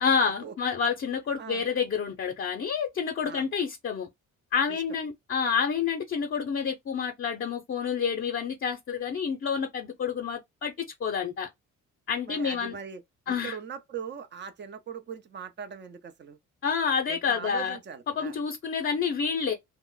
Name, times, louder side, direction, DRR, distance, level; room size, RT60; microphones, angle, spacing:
voice 1, 0.0-4.1 4.5-10.7 11.0-11.5 12.1-12.8 13.3-13.6 16.6-17.8 18.2-19.5, left 6 dB, 40° left, 0.7 m, -28 dB
voice 2, 12.3-13.0 13.3-16.4 17.1-18.4, right 7 dB, 35° right, 0.6 m, -40 dB
2.4 x 2.1 x 3.8 m
cardioid pair, 90°, 30 cm